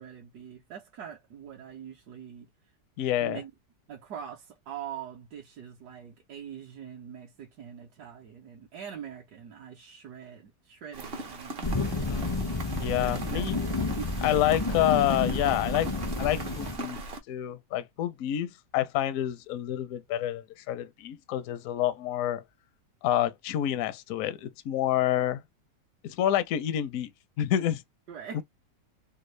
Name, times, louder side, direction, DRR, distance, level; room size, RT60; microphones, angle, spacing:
voice 1, 0.0-2.5 3.2-3.5 3.9-11.6 13.0-13.7 14.0-14.1 28.1-28.4, right 8 dB, 70° right, 1.2 m, -43 dB
voice 2, 3.0-3.4 12.0-12.4 12.8-13.6 14.2-15.9 16.2-17.0 17.3-22.4 23.0-25.4 26.0-27.1 27.4-27.8 28.3-28.4, left 12 dB, 70° left, 0.8 m, -28 dB
Rain, 10.9-17.2, right 3 dB, 55° right, 0.7 m, -40 dB
sound 1, 11.6-16.8, left 3 dB, 35° left, 0.4 m, -31 dB
3.5 x 2.2 x 3.1 m
omnidirectional pair, 1.8 m